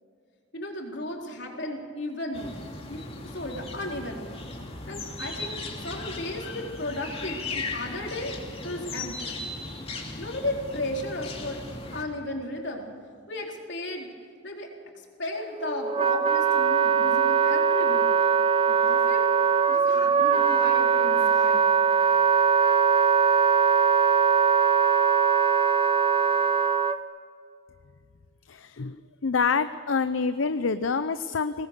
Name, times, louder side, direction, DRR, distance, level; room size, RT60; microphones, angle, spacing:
voice 1, 0.5-2.5 2.9-3.0 3.3-4.4 4.9-8.3 8.6-9.4 10.2-11.6 11.9-12.9 13.3-14.1 14.4-14.7 15.2-18.0 18.7-19.3 19.7-21.7, left 1 dB, 60° left, 0 dB, 4.1 m, -34 dB
sound 1, 2.3-12.0, left 3 dB, 30° left, 2.8 m, -37 dB
Wind instrument woodwind instrument, 15.4-27.0, right 6 dB, 25° right, 0.8 m, -21 dB
voice 2, 28.5-29.0 29.2-31.7, left 5 dB, 75° left, 12 dB, 0.6 m, -26 dB
23.5 x 19.0 x 6.8 m, 2.2 s
head